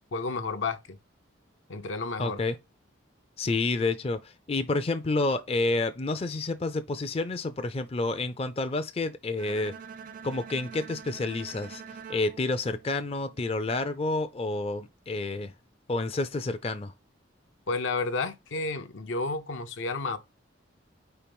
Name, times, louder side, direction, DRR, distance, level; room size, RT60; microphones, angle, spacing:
voice 1, 0.1-1.0 1.7-2.4 17.7-20.2, left 3 dB, 75° left, 0.7 m, -31 dB
voice 2, 2.2-2.6 3.4-9.8 10.2-11.8 12.1-15.5 15.9-16.9, left 2 dB, 30° left, 0.4 m, -29 dB
Bowed string instrument, 9.4-13.5, right 6 dB, 45° right, 0.5 m, -45 dB
4.5 x 4.5 x 5.2 m
head